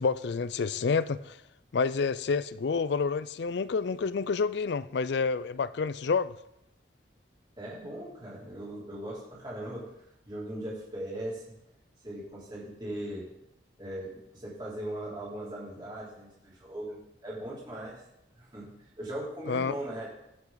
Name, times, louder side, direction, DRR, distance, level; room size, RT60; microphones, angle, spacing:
voice 1, 0.0-1.4 1.7-6.3 19.5-19.7, left 5 dB, 65° left, 16 dB, 0.4 m, -28 dB
voice 2, 7.6-9.8 10.2-11.5 12.0-13.3 13.8-17.0 17.2-17.9 18.4-20.1, right 1 dB, 25° right, -6 dB, 2.9 m, -39 dB
17.0 x 5.8 x 3.9 m, 0.84 s
head